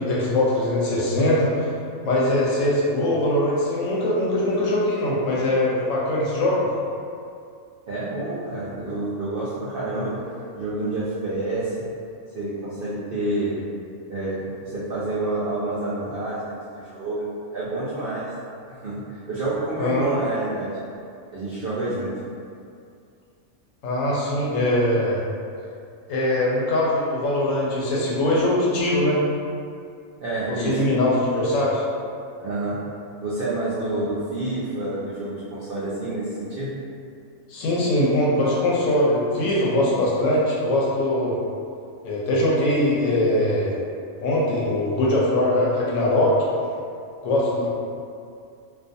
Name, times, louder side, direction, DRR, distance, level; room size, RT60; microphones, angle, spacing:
voice 1, 0.0-1.7 2.0-6.6 19.8-20.1 23.8-25.2 26.1-29.2 30.5-31.8 37.5-41.4 42.0-43.8 44.2-46.3 47.2-47.7, left 1 dB, 70° left, -5 dB, 0.9 m, -22 dB
voice 2, 7.9-10.1 10.6-11.8 12.3-13.6 14.1-17.3 17.5-18.3 18.7-20.7 21.3-22.1 30.2-30.8 32.4-32.8 33.2-36.7, right 2 dB, 70° right, -10 dB, 0.5 m, -28 dB
2.4 x 2.3 x 2.5 m, 2.4 s
omnidirectional pair, 1.5 m